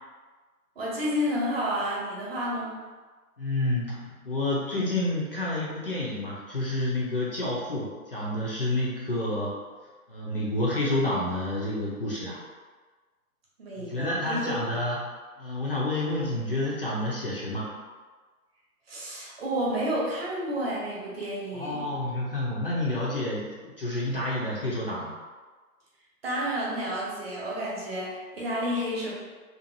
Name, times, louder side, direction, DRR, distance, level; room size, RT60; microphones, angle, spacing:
voice 1, 0.8-2.8 13.6-14.5 18.9-21.9 26.2-29.1, equal, 40° right, -5 dB, 0.8 m, -30 dB
voice 2, 3.4-9.6 10.1-12.4 13.8-15.0 15.4-17.7 21.5-25.2, left 1 dB, 40° left, -6 dB, 0.4 m, -29 dB
2.6 x 2.4 x 2.6 m, 1.4 s
figure-of-eight pair, 140°, 46 cm